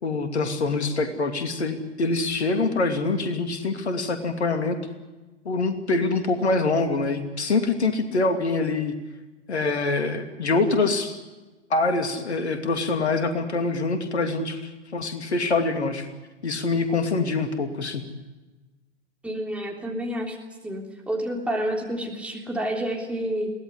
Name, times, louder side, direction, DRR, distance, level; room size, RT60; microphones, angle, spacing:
voice 1, 0.0-4.8 5.4-8.9 9.5-11.2 11.7-14.6 14.9-16.1 16.4-18.0, left 3 dB, 65° left, 7 dB, 2.7 m, -25 dB
voice 2, 19.2-20.4 20.6-23.5, right 1 dB, 5° right, 0 dB, 3.4 m, -29 dB
22.5 x 18.0 x 9.9 m, 1.2 s
figure-of-eight pair, 110°, 35 cm